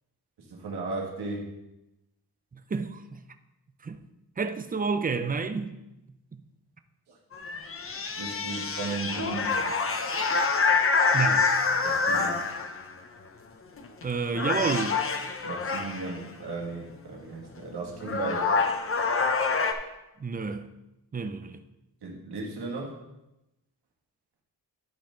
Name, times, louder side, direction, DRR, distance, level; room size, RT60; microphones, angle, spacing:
voice 1, 0.4-1.5 7.1-7.2 8.2-9.6 11.8-12.4 15.4-18.5 22.0-23.0, right 3 dB, 85° right, 1.8 m, -35 dB
voice 2, 2.7-3.2 3.8-4.0 4.4-5.7 6.3-6.4 11.1-11.5 14.0-15.0 20.2-20.7 21.1-21.6, right 4 dB, 25° right, 0.5 m, -29 dB
sound 1, 7.3-12.9 13.8-14.0 14.3-16.2 17.6-17.7 18.0-19.7, left 4 dB, 35° left, 0.7 m, -26 dB
11.0 x 5.5 x 3.8 m
wide cardioid pair, 130°, 38 cm